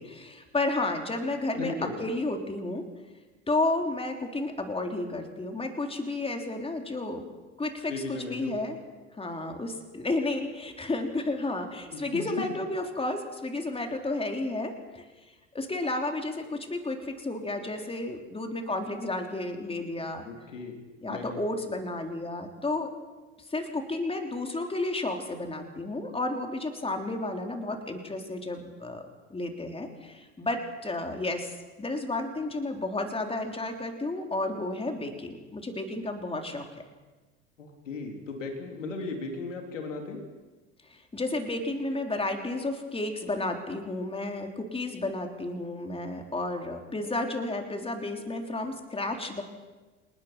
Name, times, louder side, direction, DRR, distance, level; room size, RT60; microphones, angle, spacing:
voice 1, 0.0-2.8 3.5-7.3 7.6-8.8 9.2-15.0 15.5-20.3 21.0-22.9 23.5-36.8 40.9-49.4, left 2 dB, 15° left, 4 dB, 3.7 m, -32 dB
voice 2, 1.6-2.0 7.9-8.5 11.9-12.5 20.2-20.8 21.1-21.4 37.6-40.2, left 3 dB, 90° left, 3 dB, 3.6 m, -36 dB
28.0 x 19.5 x 6.0 m, 1.2 s
hypercardioid pair, 75°, 37 cm